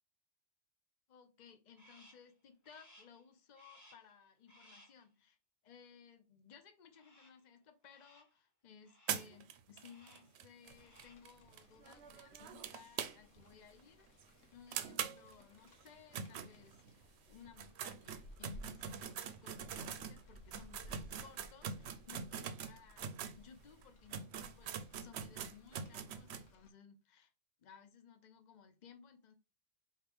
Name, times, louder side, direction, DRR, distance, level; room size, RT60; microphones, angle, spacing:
voice 1, 1.1-5.4 5.6-14.2 14.5-27.3 27.6-29.3, left 7 dB, 45° left, 0.7 m, -60 dB
Crow, 1.8-2.3 2.6-3.2 3.6-4.1 4.5-5.0 6.9-7.5 7.8-8.4 8.8-9.4 9.8-10.4 10.7-11.3, equal, 15° left, 0.8 m, -64 dB
sound 1, 9.1-13.5 13.8-13.9 14.2-14.3 14.7-17.0 17.5-23.4 23.8-23.9 24.1-26.5, right 7 dB, 65° right, 0.8 m, -44 dB
Rain, 10.7-26.7, left 1 dB, 85° left, 1.1 m, -60 dB
4.7 x 2.9 x 3.4 m
omnidirectional pair, 1.3 m